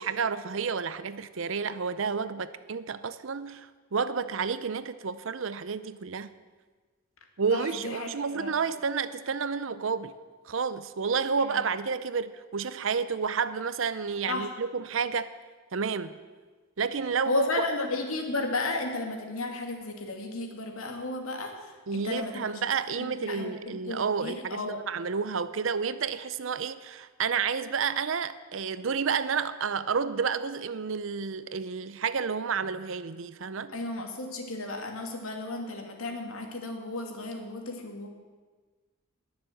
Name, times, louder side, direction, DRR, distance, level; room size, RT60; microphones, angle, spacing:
voice 1, 0.0-6.3 7.4-10.1 10.4-15.3 15.7-16.1 16.8-17.5 21.9-24.6 24.9-33.7, right 5 dB, 65° right, 14 dB, 0.6 m, -30 dB
voice 2, 7.5-8.6 11.4-11.6 14.3-14.5 17.3-22.6 22.9-24.8 33.7-38.1, left 2 dB, 85° left, 3 dB, 2.4 m, -34 dB
20.5 x 7.2 x 7.8 m, 1.4 s
head